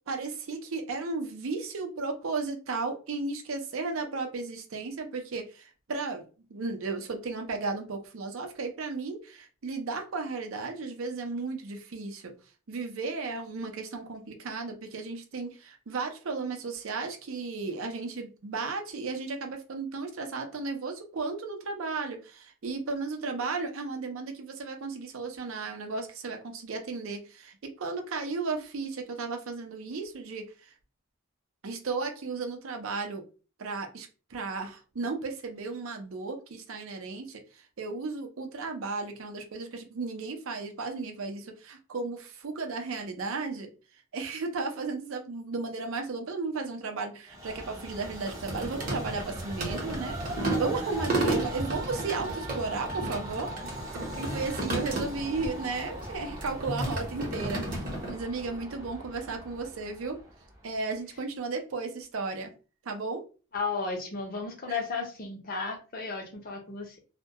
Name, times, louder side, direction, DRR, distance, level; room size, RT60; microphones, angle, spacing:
voice 1, 0.1-6.3 6.5-12.3 12.7-30.7 31.6-33.2 33.6-43.7 44.1-60.2 60.6-62.5 62.9-63.2 64.7-64.8, right 4 dB, 70° right, 4 dB, 0.5 m, -34 dB
Train, 47.3-60.8, equal, 15° right, 0.5 m, -41 dB
sound 1, 47.8-55.5 55.8-58.1, right 2 dB, 40° right, 0.8 m, -33 dB
voice 2, 63.5-67.0, left 4 dB, 40° left, 3 dB, 0.6 m, -34 dB
2.2 x 2.1 x 2.7 m, 0.35 s
head